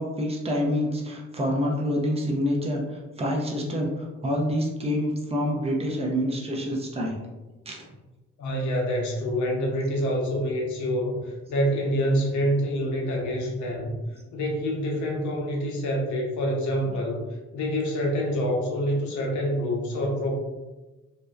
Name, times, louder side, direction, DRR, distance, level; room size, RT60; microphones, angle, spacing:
voice 1, 0.0-7.2 7.7-7.8 16.8-17.0, equal, 20° right, 0 dB, 0.6 m, -27 dB
voice 2, 8.4-11.2 11.5-13.9 14.3-17.2 17.5-20.3, equal, 75° left, -1 dB, 0.8 m, -26 dB
2.6 x 2.2 x 2.3 m, 1.1 s
cardioid pair, 90°, 30 cm